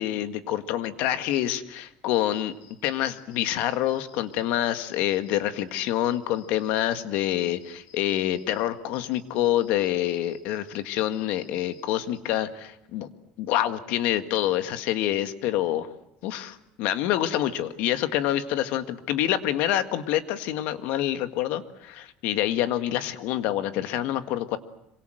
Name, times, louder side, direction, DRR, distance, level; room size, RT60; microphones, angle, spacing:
voice 1, 0.0-2.5 2.8-13.1 13.4-15.9 16.2-24.6, left 12 dB, 65° left, 10 dB, 1.8 m, -27 dB
sound 1, 2.1-8.6 9.1-12.2, left 6 dB, 90° left, 6.7 m, -56 dB
26.5 x 24.5 x 7.7 m, 0.82 s
cardioid pair, 160°, 3 cm